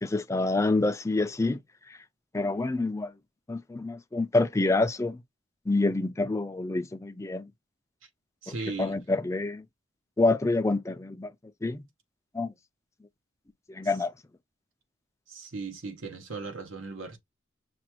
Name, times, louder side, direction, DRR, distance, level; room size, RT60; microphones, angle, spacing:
voice 1, 0.0-1.6 2.3-3.1 3.5-5.2 5.7-7.5 8.8-9.6 10.2-11.3 11.6-11.8 12.3-12.5 13.7-14.1, left 2 dB, 15° left, 0.3 m, -27 dB
voice 2, 8.4-9.0 13.8-14.0 15.3-17.2, right 4 dB, 80° right, 1.0 m, -38 dB
6.0 x 2.3 x 2.9 m
head